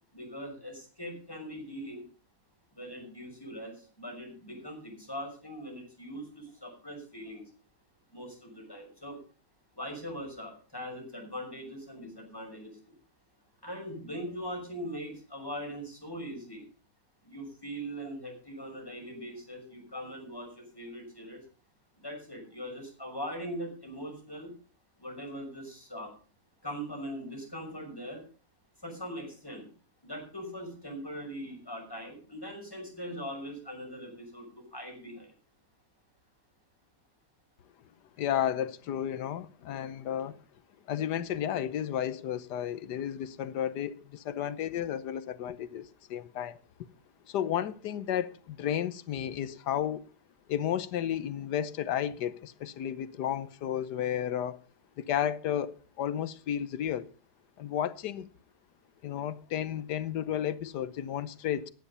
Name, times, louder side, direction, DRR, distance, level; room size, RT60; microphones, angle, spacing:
voice 1, 0.1-2.0 2.7-7.4 8.1-9.2 9.7-12.9 13.6-16.6 17.2-21.4 22.0-24.5 25.0-26.1 26.6-28.3 28.8-29.7 30.0-35.3, equal, 15° left, 6.2 m, -41 dB
voice 2, 38.2-40.4 40.9-46.6 47.3-50.0 50.5-54.6 55.0-57.1 57.6-58.3 59.0-61.7, left 10 dB, 90° left, 1.5 m, -32 dB
15.0 x 10.5 x 5.6 m
omnidirectional pair, 1.7 m